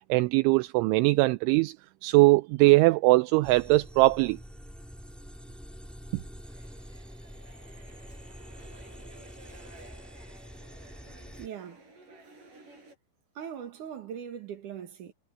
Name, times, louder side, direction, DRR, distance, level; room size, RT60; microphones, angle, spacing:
voice 1, 0.1-1.8 2.0-4.4 6.1-6.2, right 22 dB, 85° right, 2.9 m, -21 dB
sound 1, 3.4-11.5, equal, ahead, 1.3 m, -46 dB
sound 2, 6.4-13.0, right 2 dB, 40° right, 9.2 m, -53 dB
voice 2, 11.4-11.9 13.4-15.1, right 8 dB, 60° right, 2.2 m, -40 dB
omnidirectional pair, 5.7 m